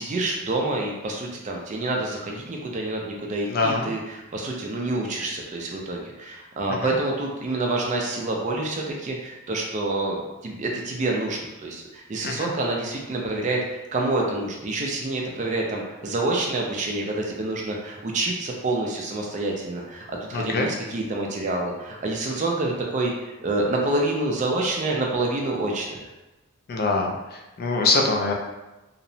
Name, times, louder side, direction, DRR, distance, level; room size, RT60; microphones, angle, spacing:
voice 1, 0.0-26.0, right 2 dB, 35° right, 0 dB, 0.3 m, -27 dB
voice 2, 3.5-3.9 6.8-6.9 12.2-12.5 20.3-20.7 26.7-28.3, left 3 dB, 45° left, 1 dB, 0.3 m, -24 dB
2.7 x 2.0 x 2.6 m, 1.0 s
head